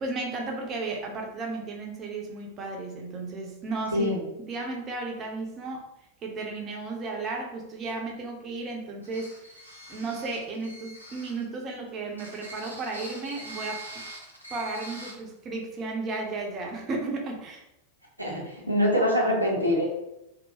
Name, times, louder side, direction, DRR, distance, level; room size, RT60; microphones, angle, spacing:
voice 1, 0.0-4.1 4.5-5.9 6.2-9.5 9.9-14.0 14.5-17.6, right 3 dB, 30° right, 1 dB, 0.6 m, -34 dB
voice 2, 3.9-4.2 18.2-19.8, equal, 85° right, -2 dB, 0.7 m, -24 dB
sound 1, 9.0-11.4 12.1-15.1, right 1 dB, 90° left, 0.6 m, -43 dB
2.8 x 2.0 x 2.9 m, 0.91 s
figure-of-eight pair, 90°, 0 cm